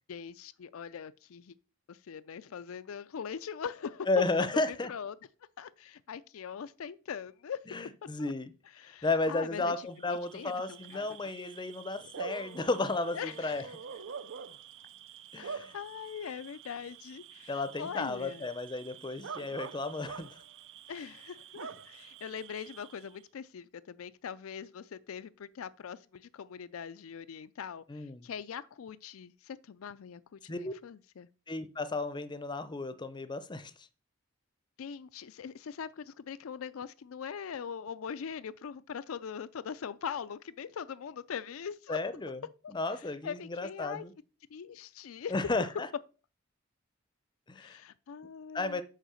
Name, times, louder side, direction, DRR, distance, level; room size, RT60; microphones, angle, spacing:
voice 1, 0.1-1.5 1.9-4.2 4.5-4.6 4.9-5.2 5.6-7.6 8.2-8.3 8.7-11.3 13.1-13.7 15.4-18.5 20.9-31.3 34.8-42.0 42.6-44.0 44.5-45.4 47.6-48.8, left 7 dB, 70° left, 0.4 m, -42 dB
voice 2, 4.1-4.9 7.7-8.5 9.0-13.6 15.3-15.7 17.5-20.4 27.9-28.3 30.5-30.7 31.5-33.7 41.9-42.4 42.7-44.1 45.3-45.9 47.5-47.8 48.5-48.8, left 3 dB, 20° left, 0.6 m, -33 dB
Bark / Cricket, 9.9-23.2, right 6 dB, 60° right, 0.5 m, -47 dB
6.6 x 5.0 x 6.3 m
head